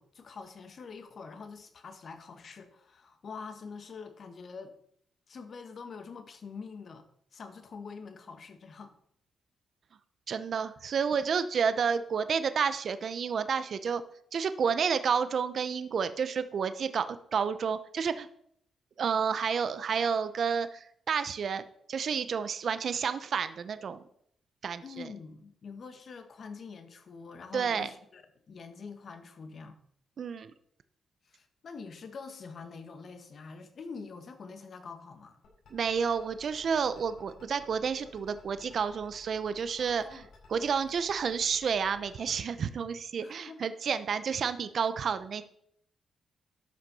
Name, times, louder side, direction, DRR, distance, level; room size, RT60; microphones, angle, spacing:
voice 1, 0.0-4.8 5.3-7.1 7.3-8.9 24.8-29.8 31.2-35.4 39.8-40.3 43.2-43.8, left 5 dB, 55° left, 1.6 m, -45 dB
voice 2, 10.3-14.0 14.3-18.3 19.0-21.6 21.9-24.0 24.6-25.1 27.5-27.9 30.2-30.5 35.7-45.4, right 6 dB, 60° right, 0.7 m, -30 dB
sound 1, 35.4-42.3, left 4 dB, 80° left, 4.8 m, -55 dB
12.5 x 5.9 x 5.4 m
cardioid pair, 70°, 0 cm